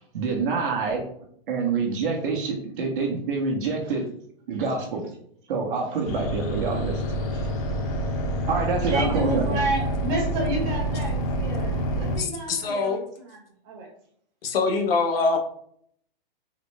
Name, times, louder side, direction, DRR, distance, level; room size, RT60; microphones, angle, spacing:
voice 1, 0.1-1.0 1.5-4.0 4.5-5.0 5.5-7.2 8.5-9.6, right 4 dB, 60° right, 1 dB, 1.1 m, -27 dB
sound 1, 6.0-12.2, equal, 35° left, 0.8 m, -27 dB
voice 2, 8.8-13.4 13.6-13.9, right 2 dB, 30° right, 0 dB, 1.1 m, -30 dB
voice 3, 12.1-13.0 14.4-15.4, left 4 dB, 75° left, 4 dB, 0.8 m, -24 dB
4.1 x 2.0 x 3.2 m, 0.65 s
hypercardioid pair, 150°, 30 cm